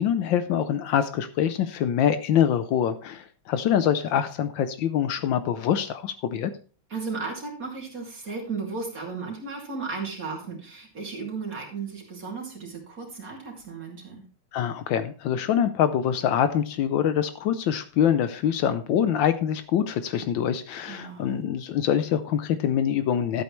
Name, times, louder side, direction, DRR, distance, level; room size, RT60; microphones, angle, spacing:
voice 1, 0.0-6.5 14.5-23.4, left 9 dB, 75° left, 11 dB, 1.3 m, -24 dB
voice 2, 6.9-14.2 20.9-21.4, right 4 dB, 45° right, 0 dB, 2.9 m, -35 dB
12.5 x 8.3 x 3.1 m, 0.38 s
omnidirectional pair, 2.2 m